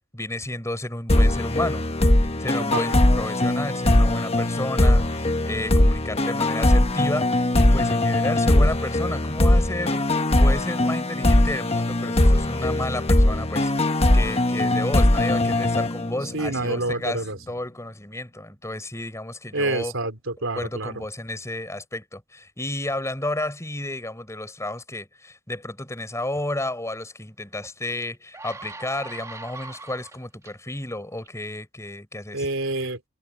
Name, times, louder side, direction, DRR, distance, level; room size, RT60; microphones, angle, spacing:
voice 1, 0.1-1.8 2.4-19.9 20.5-32.5, left 1 dB, 15° left, 5.6 m, -32 dB
sound 1, 1.1-16.5, left 1 dB, 30° left, 1.2 m, -20 dB
voice 2, 16.3-17.4 19.5-21.1 32.3-33.1, right 2 dB, 80° right, 3.4 m, -27 dB
sound 2, 27.6-27.7 28.1-30.5 31.2-31.4, right 3 dB, 15° right, 2.2 m, -41 dB
head